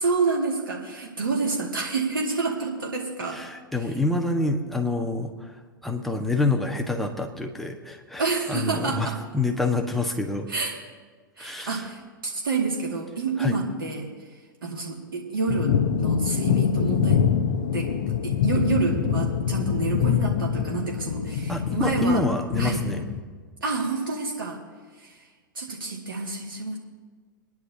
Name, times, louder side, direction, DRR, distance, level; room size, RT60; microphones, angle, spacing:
voice 1, 0.0-3.4 8.2-9.2 10.5-10.8 11.4-14.1 14.6-17.2 17.7-22.2 22.6-22.8 23.6-24.6 25.0-25.2 25.6-26.8, right 4 dB, 80° right, -1 dB, 2.2 m, -28 dB
voice 2, 3.3-5.5 5.8-8.2 8.5-10.5 11.4-11.8 13.4-13.6 21.5-23.1, left 2 dB, ahead, 2 dB, 1.4 m, -27 dB
sound 1, 15.5-23.2, left 7 dB, 65° left, 1.0 m, -25 dB
29.0 x 10.5 x 2.8 m, 1.5 s
hypercardioid pair, 105°, 11 cm